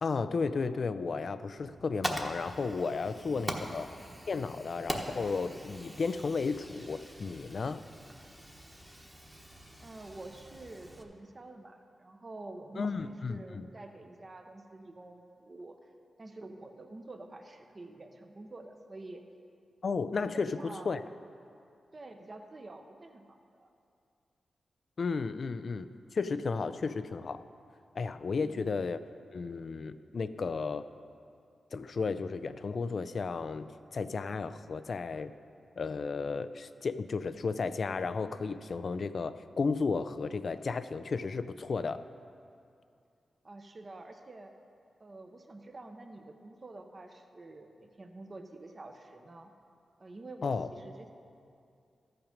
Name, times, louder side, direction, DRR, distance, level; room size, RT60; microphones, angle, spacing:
voice 1, 0.0-4.0 4.3-7.8 12.8-13.7 19.8-21.0 25.0-27.4 28.0-29.0 29.3-30.8 31.7-35.3 35.8-42.0 50.4-50.7, left 4 dB, 60° left, 12 dB, 0.4 m, -33 dB
Fire, 1.6-11.0, equal, 10° right, 1.1 m, -42 dB
voice 2, 9.8-15.8 16.2-19.2 20.2-21.0 21.9-23.7 25.7-25.8 28.3-28.6 43.4-44.5 45.0-49.5 50.0-51.1, right 2 dB, 40° right, 5 dB, 0.9 m, -48 dB
13.5 x 5.8 x 5.2 m, 2.5 s
cardioid pair, 55°, 0 cm